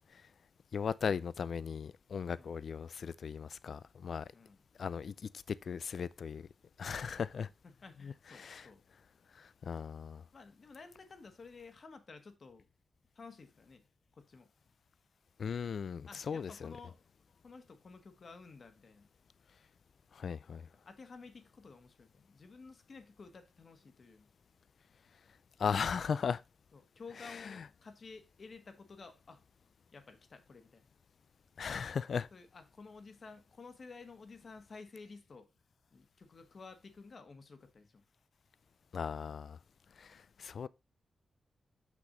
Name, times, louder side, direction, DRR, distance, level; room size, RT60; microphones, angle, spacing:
voice 1, 0.7-4.3 4.8-5.1 5.5-6.4 6.8-7.5 8.0-8.7 9.4-10.2 15.4-16.7 20.1-20.7 25.6-26.4 27.4-27.5 31.6-32.3 38.9-39.6 40.0-40.7, left 6 dB, 70° left, 0.4 m, -37 dB
voice 2, 4.3-4.6 7.6-8.8 10.3-12.7 13.1-13.8 14.1-14.5 16.1-17.0 17.4-19.1 20.8-24.3 26.7-29.4 29.9-30.8 32.3-35.5 35.9-38.0, left 4 dB, 55° left, 1.5 m, -53 dB
6.0 x 6.0 x 3.9 m
cardioid pair, 70°, 0 cm